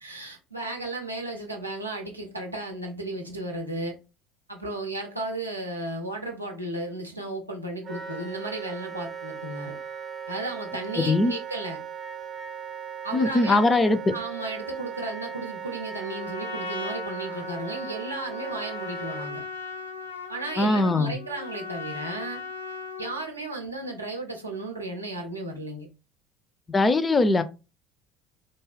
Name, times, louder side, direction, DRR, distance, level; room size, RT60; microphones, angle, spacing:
voice 1, 0.0-4.0 4.5-9.8 10.3-11.8 13.0-13.8 14.1-19.4 20.3-22.4 23.0-25.9, right 2 dB, 85° right, 0.6 m, -34 dB
Wind instrument woodwind instrument, 7.8-19.3, right 7 dB, 35° right, 0.7 m, -38 dB
voice 2, 13.1-14.1 20.6-21.2 26.7-27.4, left 2 dB, 20° left, 0.3 m, -21 dB
Trumpet, 15.9-23.3, left 4 dB, 85° left, 0.5 m, -38 dB
2.6 x 2.2 x 3.2 m
figure-of-eight pair, 65°, 0 cm